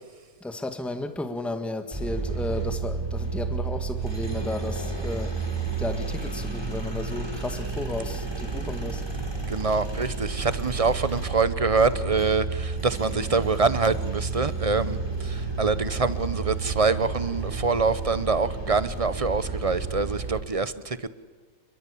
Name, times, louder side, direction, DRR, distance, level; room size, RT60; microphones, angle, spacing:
voice 1, 0.4-5.3 5.8-9.0, left 2 dB, ahead, 7 dB, 1.8 m, -33 dB
sound 1, 1.9-20.4, right 4 dB, 15° right, 5.6 m, -31 dB
voice 2, 9.5-21.1, right 4 dB, 30° right, 14 dB, 0.6 m, -25 dB
29.0 x 22.0 x 8.5 m, 1.4 s
omnidirectional pair, 1.8 m